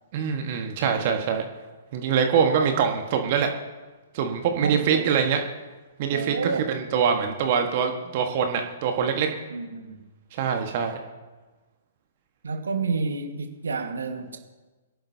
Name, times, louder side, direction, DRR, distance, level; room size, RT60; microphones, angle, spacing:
voice 1, 0.1-1.4 1.9-3.5 4.1-5.4 6.0-9.3 10.3-11.0, right 7 dB, 40° right, 4 dB, 1.5 m, -24 dB
voice 2, 0.8-1.1 2.6-2.7 4.6-5.2 6.1-6.7 9.5-10.0 12.4-14.3, right 4 dB, 70° right, 4 dB, 1.6 m, -30 dB
23.0 x 11.5 x 2.8 m, 1.2 s
figure-of-eight pair, 115°, 0 cm